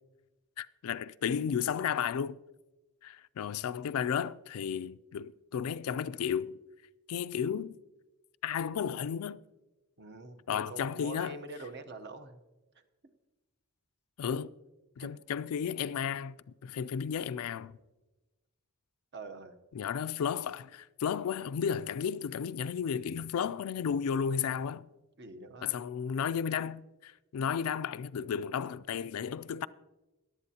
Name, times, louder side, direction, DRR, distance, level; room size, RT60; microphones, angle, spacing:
voice 1, 0.6-2.4 3.0-6.6 7.1-7.8 8.4-9.4 10.5-11.4 14.2-14.5 15.0-16.4 16.6-17.8 19.7-24.9 25.6-29.7, left 7 dB, 75° left, 0.3 m, -33 dB
voice 2, 10.0-12.4 12.7-12.8 15.0-15.1 19.1-19.6 25.2-25.8, right 2 dB, 50° right, 0.9 m, -45 dB
17.5 x 11.0 x 2.8 m
head